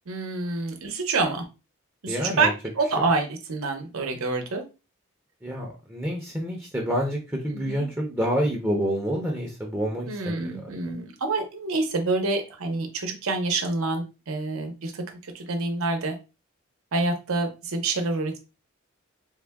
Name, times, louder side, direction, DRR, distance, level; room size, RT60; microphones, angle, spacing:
voice 1, 0.1-1.4 2.0-4.7 7.5-7.9 10.1-15.0 15.3-16.2 16.9-18.4, right 3 dB, 80° right, 5 dB, 0.7 m, -27 dB
voice 2, 2.1-2.5 2.9-3.0 5.4-10.4, equal, 10° right, -1 dB, 0.5 m, -28 dB
3.5 x 2.2 x 3.4 m, 0.29 s
head